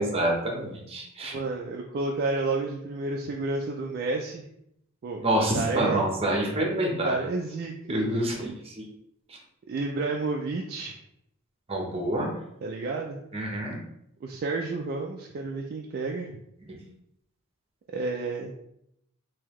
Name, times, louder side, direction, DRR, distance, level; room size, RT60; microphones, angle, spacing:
voice 1, 0.0-1.3 5.2-7.2 7.9-8.9 11.7-12.3 13.3-13.8, right 1 dB, 25° right, 0 dB, 0.8 m, -27 dB
voice 2, 1.3-4.5 5.0-5.3 5.5-6.1 7.0-8.0 9.7-10.9 12.6-13.2 14.2-16.3 17.9-18.5, right 3 dB, 45° right, 1 dB, 0.3 m, -30 dB
3.7 x 2.8 x 3.0 m, 0.77 s
head